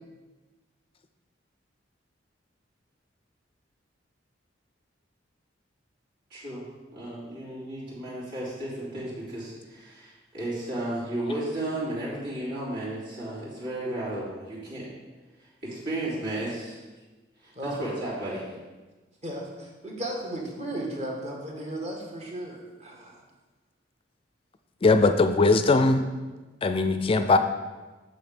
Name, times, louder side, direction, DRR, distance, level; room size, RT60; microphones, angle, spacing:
voice 1, 6.3-6.6 6.9-14.9 15.4-16.8 17.4-17.5 17.8-18.5, right 1 dB, 65° right, -9 dB, 3.1 m, -33 dB
voice 2, 19.2-23.2, right 1 dB, 35° right, -1 dB, 1.6 m, -35 dB
voice 3, 24.8-26.1 26.6-27.4, left 3 dB, 30° left, 9 dB, 0.4 m, -20 dB
7.1 x 6.4 x 5.1 m, 1.2 s
head